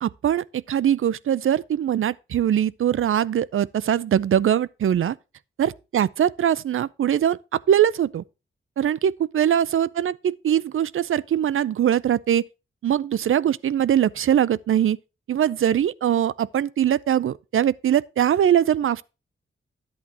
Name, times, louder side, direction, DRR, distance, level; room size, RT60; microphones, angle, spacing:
voice 1, 0.0-5.2 5.6-8.2 8.8-12.4 12.8-15.0 15.3-19.0, right 10 dB, 75° right, 0.5 m, -22 dB
11.0 x 8.6 x 2.8 m
wide cardioid pair, 120°, 21 cm